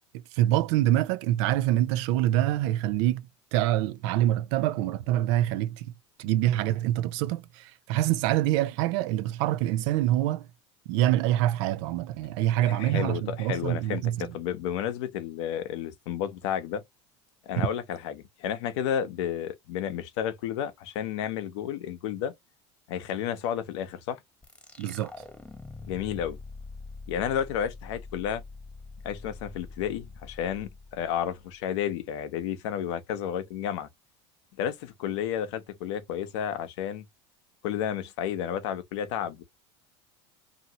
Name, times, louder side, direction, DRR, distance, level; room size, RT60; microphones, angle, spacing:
voice 1, 0.1-5.9 6.2-10.5 10.9-14.3 17.6-17.7 24.8-25.1, right 14 dB, 75° right, 0.5 m, -26 dB
voice 2, 12.6-16.8 17.5-22.3 22.9-24.2 25.9-26.4 27.1-28.4 29.0-33.9 34.6-37.0 37.6-39.4, left 9 dB, 80° left, 0.8 m, -31 dB
sound 1, 24.4-31.7, left 3 dB, 5° left, 0.8 m, -45 dB
2.8 x 2.8 x 2.8 m
supercardioid pair, 100°, 15 cm